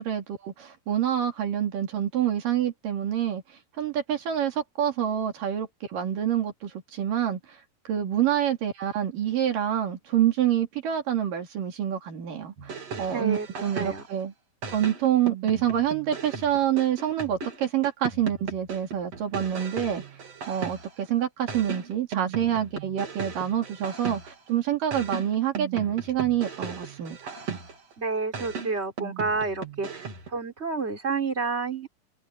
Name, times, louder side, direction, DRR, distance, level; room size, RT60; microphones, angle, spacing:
voice 1, 0.0-7.6 7.9-14.3 14.7-20.0 20.5-27.3, right 10 dB, 75° right, 4.1 m, -27 dB
sound 1, 12.6-14.2 14.6-21.1 21.5-24.5 24.9-27.9 28.3-30.4, right 5 dB, 50° right, 4.3 m, -37 dB
voice 2, 13.1-13.5 13.7-14.0 28.0-31.9, right 4 dB, 20° right, 4.5 m, -29 dB
open air
omnidirectional pair, 3.9 m